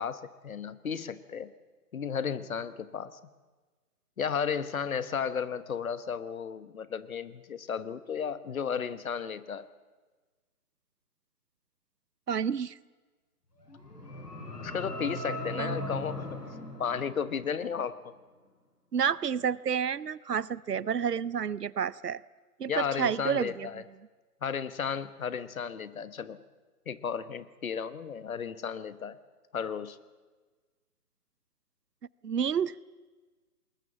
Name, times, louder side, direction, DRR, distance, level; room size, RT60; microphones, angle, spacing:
voice 1, 0.0-1.5 1.9-3.2 4.2-9.7 14.6-16.4 16.8-18.0 22.7-23.8 24.4-26.4 26.9-29.2 29.5-30.0, left 7 dB, 60° left, 15 dB, 1.2 m, -34 dB
voice 2, 12.3-12.8 15.6-15.8 18.9-22.2 22.6-23.7 32.2-32.8, right 7 dB, 85° right, 22 dB, 0.8 m, -30 dB
sound 1, 13.6-17.8, left 1 dB, 90° left, 5.0 m, -39 dB
20.0 x 20.0 x 7.2 m, 1.3 s
figure-of-eight pair, 145°, 46 cm